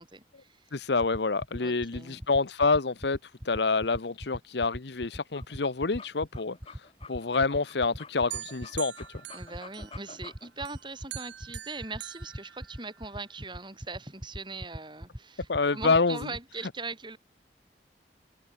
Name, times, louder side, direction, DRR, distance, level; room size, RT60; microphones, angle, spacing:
voice 1, 0.0-0.7 1.6-2.2 9.3-17.2, right 3 dB, 25° right, 6.1 m, -41 dB
voice 2, 0.7-9.2 15.5-16.2, left 4 dB, 70° left, 0.9 m, -27 dB
sound 1, 1.0-16.4, equal, 10° right, 1.1 m, -39 dB
sound 2, 5.2-10.7, left 4 dB, 30° left, 4.3 m, -49 dB
sound 3, 8.3-10.2 10.7-13.2, right 13 dB, 85° right, 1.4 m, -44 dB
open air
head